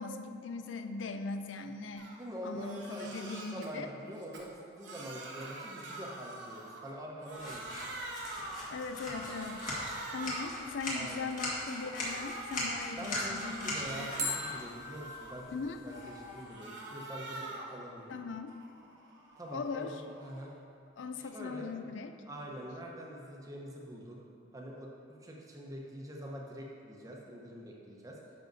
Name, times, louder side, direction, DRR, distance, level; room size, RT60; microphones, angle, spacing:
voice 1, 0.0-2.1 2.4-3.9 8.7-9.7 10.1-14.3 15.5-15.8 18.1-18.5 19.5-20.0 21.0-22.1, left 4 dB, 80° left, 7 dB, 0.4 m, -40 dB
Crying sobbing, 2.0-2.2 2.5-3.7 4.1-6.9 7.2-8.7 9.1-10.6 11.1-12.7 13.1-15.4 15.8-17.8 18.2-20.5, right 2 dB, 80° right, 1.1 m, -45 dB
voice 2, 2.2-7.7 10.9-11.2 13.0-15.5 15.8-18.2 19.4-20.5 21.3-21.8 22.3-24.2 24.5-24.9 25.2-28.2, equal, 20° right, -2 dB, 0.9 m, -44 dB
sound 1, 6.8-7.2 14.2-17.1, left 1 dB, 40° right, 1.2 m, -43 dB
sound 2, 7.3-16.4, left 1 dB, 45° left, 1.7 m, -40 dB
10.5 x 6.5 x 2.7 m, 2.5 s
head